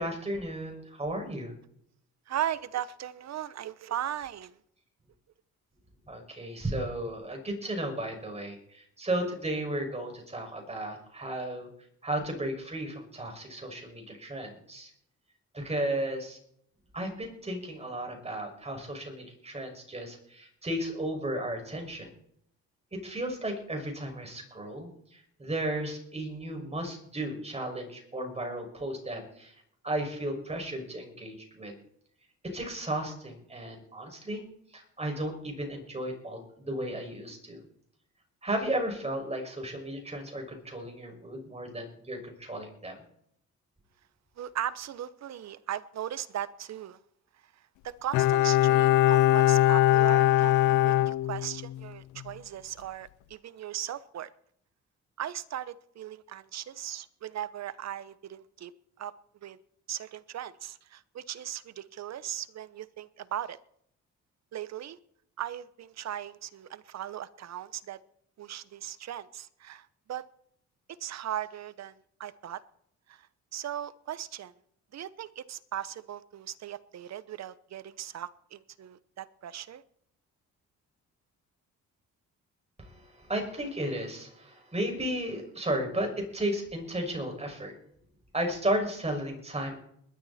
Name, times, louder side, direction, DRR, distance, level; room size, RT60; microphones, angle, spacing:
voice 1, 0.0-1.5 6.1-11.7 12.0-14.9 15.5-16.4 16.9-22.1 22.9-29.5 29.8-31.7 32.5-34.4 34.7-37.6 38.4-43.0 82.8-87.7 88.3-89.8, right 1 dB, 20° right, 2 dB, 6.2 m, -34 dB
voice 2, 2.3-4.6 44.4-47.0 47.4-47.5 47.8-54.3 55.2-58.7 59.0-59.1 59.4-59.6 59.9-63.6 64.5-65.0 65.4-68.0 68.4-70.2 71.0-72.6 73.1-73.3 73.5-74.5 74.9-79.8, right 11 dB, 60° right, 16 dB, 1.0 m, -38 dB
Bowed string instrument, 48.1-51.9 52.2-52.3, left 14 dB, 85° left, 0.5 m, -22 dB
20.5 x 12.5 x 4.3 m, 0.68 s
cardioid pair, 90°, 30 cm